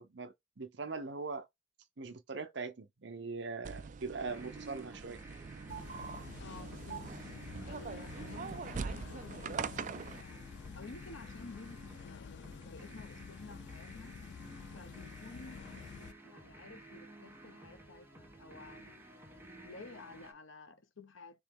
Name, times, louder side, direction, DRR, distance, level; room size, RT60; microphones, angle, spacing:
voice 1, 0.0-1.5 2.0-5.2, right 4 dB, 60° right, 0.8 m, -41 dB
sound 1, 3.6-10.2, right 5 dB, 40° right, 0.3 m, -43 dB
sound 2, 4.3-20.3, right 1 dB, 10° right, 1.0 m, -54 dB
sound 3, 5.7-16.1, left 6 dB, 60° left, 0.3 m, -49 dB
voice 2, 6.4-7.2 7.6-14.2 14.7-15.7 16.0-19.0 19.6-21.4, left 3 dB, 85° left, 0.9 m, -53 dB
3.9 x 3.1 x 3.7 m
head